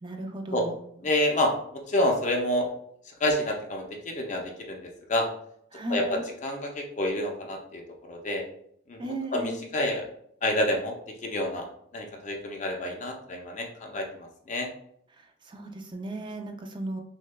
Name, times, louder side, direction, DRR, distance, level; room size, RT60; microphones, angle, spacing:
voice 1, 0.0-0.7 5.7-6.2 9.0-9.6 15.4-17.0, right 1 dB, 25° right, 4 dB, 0.4 m, -35 dB
voice 2, 1.0-1.5 1.9-2.7 3.2-4.8 5.1-5.3 5.9-7.8 8.1-8.4 8.9-10.0 10.4-10.9 11.2-11.7 11.9-14.7, left 1 dB, 35° left, 2 dB, 0.5 m, -28 dB
6.2 x 2.2 x 2.2 m, 0.69 s
head